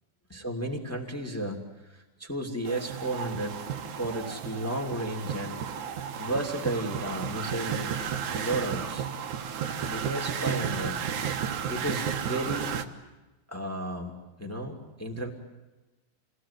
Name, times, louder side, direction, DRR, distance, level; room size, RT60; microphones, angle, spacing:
voice 1, 0.3-1.6 1.8-5.6 6.2-8.0 8.3-9.1 9.9-11.0 11.7-12.7 13.5-15.3, right 1 dB, 20° left, 2 dB, 0.4 m, -33 dB
sound 1, 2.7-12.8, right 8 dB, 85° right, 1.7 m, -33 dB
28.0 x 20.5 x 9.7 m, 1.1 s
omnidirectional pair, 5.7 m